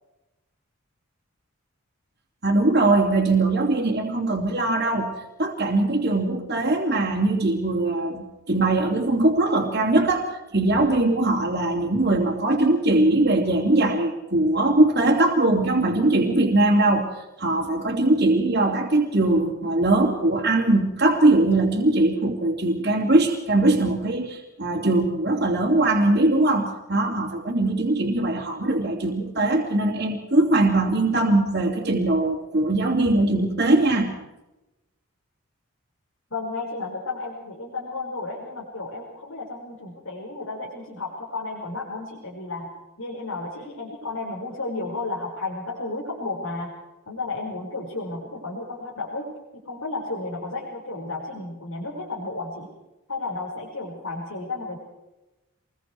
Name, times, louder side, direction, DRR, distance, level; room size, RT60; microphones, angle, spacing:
voice 1, 2.4-5.1 5.4-17.1 17.4-34.1, right 2 dB, 50° right, -3 dB, 2.8 m, -21 dB
voice 2, 36.3-42.7 43.0-46.8 47.1-52.7 53.1-54.8, left 3 dB, 80° left, -4 dB, 5.4 m, -33 dB
27.0 x 22.0 x 4.7 m, 0.99 s
head